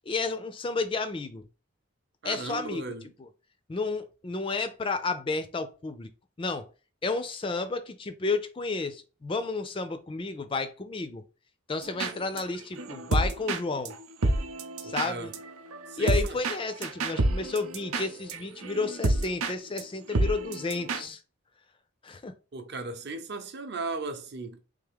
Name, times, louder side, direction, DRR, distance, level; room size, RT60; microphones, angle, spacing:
voice 1, 0.1-1.4 2.2-2.8 3.2-3.3 3.7-6.1 6.4-6.7 7.0-11.2 11.7-13.9 14.8-15.3 16.0-21.2 22.0-22.3, left 3 dB, 25° left, 0.4 m, -31 dB
voice 2, 2.2-3.0 14.8-15.3 15.9-16.4 22.5-24.6, right 3 dB, 50° right, 0.7 m, -36 dB
sound 1, 11.8-12.4 12.8-19.5 19.8-19.9 20.1-21.0, right 2 dB, 90° right, 0.7 m, -29 dB
3.4 x 3.4 x 3.5 m
head